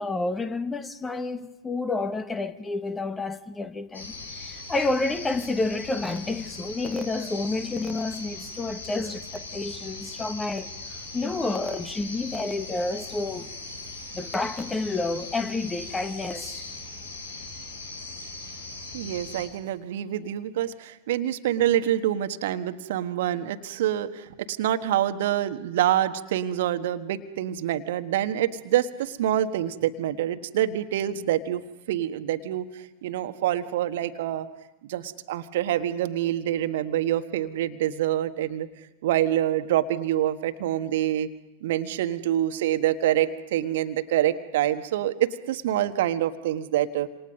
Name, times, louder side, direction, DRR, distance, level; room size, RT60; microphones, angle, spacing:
voice 1, 0.0-10.7 11.1-13.5 14.1-16.7, left 3 dB, 10° left, 1.4 m, -29 dB
sound 1, 3.9-19.5, left 3 dB, 75° left, 5.1 m, -39 dB
voice 2, 18.9-31.6 31.9-32.7 33.0-34.5 34.9-38.7 39.0-41.3 41.6-47.1, right 12 dB, 55° right, 1.4 m, -26 dB
28.0 x 27.5 x 5.5 m
figure-of-eight pair, 90°, 0 cm